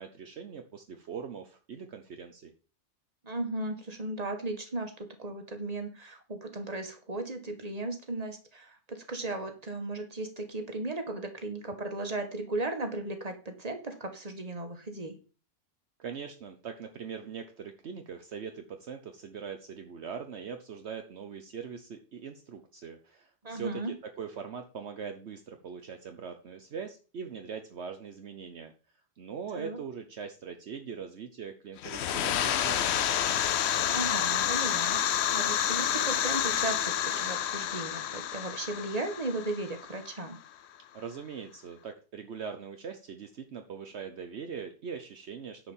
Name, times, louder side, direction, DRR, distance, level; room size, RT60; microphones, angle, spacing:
voice 1, 0.0-2.5 16.0-28.7 29.2-33.1 40.9-45.7, right 6 dB, 65° right, 6 dB, 1.2 m, -41 dB
voice 2, 3.2-15.2 23.4-23.9 29.5-29.8 33.9-40.4, right 2 dB, 30° right, 6 dB, 1.8 m, -36 dB
sound 1, 31.8-40.3, left 10 dB, 65° left, 0.9 m, -29 dB
10.5 x 5.0 x 7.3 m, 0.37 s
omnidirectional pair, 1.3 m